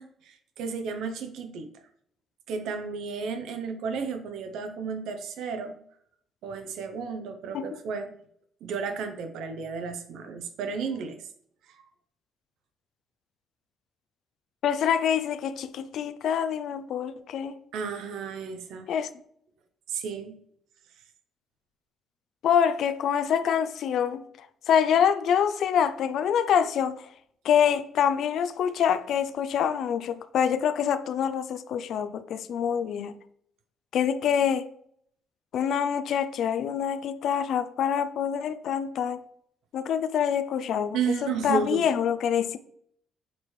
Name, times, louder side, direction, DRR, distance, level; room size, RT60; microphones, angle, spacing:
voice 1, 0.0-1.7 2.5-5.8 6.4-8.2 8.6-11.2 11.7-11.8 17.7-18.9 19.9-20.3 40.9-41.9, right 5 dB, 80° right, 0.7 m, -33 dB
voice 2, 14.6-17.6 18.9-19.1 22.4-24.2 24.7-27.1 27.4-33.1 33.9-34.7 35.5-39.2 39.7-42.6, left 8 dB, 60° left, 0.4 m, -26 dB
6.7 x 4.4 x 3.2 m
cardioid pair, 155°, 0 cm